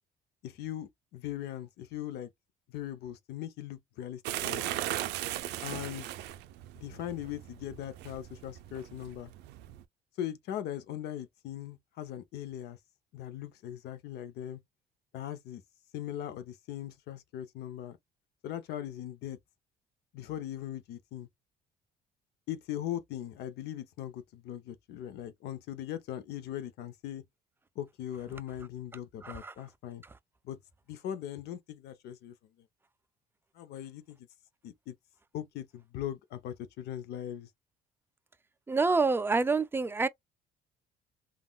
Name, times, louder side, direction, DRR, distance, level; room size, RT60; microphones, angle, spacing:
voice 1, 0.4-2.3 2.7-4.6 5.6-6.1 6.7-9.3 10.2-12.8 13.1-14.6 15.1-15.6 15.9-18.0 18.4-19.4 20.1-21.3 22.5-27.2 27.8-30.0 30.4-30.6 30.9-32.3 33.5-34.2 34.6-34.9 35.3-37.5, left 11 dB, 75° left, 0.6 m, -40 dB
sound 1, 4.2-9.8, right 13 dB, 90° right, 0.4 m, -38 dB
voice 2, 29.2-29.5 38.7-40.1, right 4 dB, 15° right, 0.3 m, -27 dB
3.6 x 2.3 x 2.2 m
cardioid pair, 110°, 17 cm